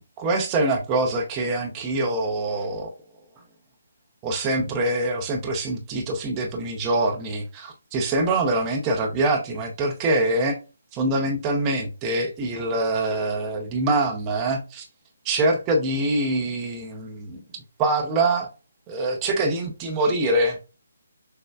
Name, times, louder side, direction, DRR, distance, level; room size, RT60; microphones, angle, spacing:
voice 1, 0.2-2.9 4.2-10.6 10.9-14.9 15.2-17.4 17.8-18.5 18.9-20.6, right 2 dB, 20° right, 0.7 m, -24 dB
6.1 x 2.1 x 2.3 m
figure-of-eight pair, 145°, 0 cm